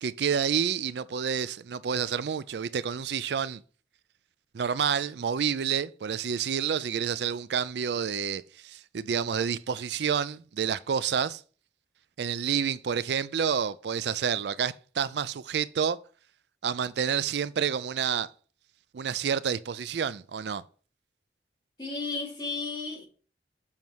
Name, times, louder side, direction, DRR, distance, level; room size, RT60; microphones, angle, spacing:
voice 1, 0.0-3.6 4.5-11.4 12.2-16.0 16.6-18.3 18.9-20.6, right 7 dB, 75° right, 0.4 m, -29 dB
voice 2, 21.8-23.0, left 3 dB, 25° left, 2.9 m, -33 dB
7.3 x 5.3 x 4.6 m
head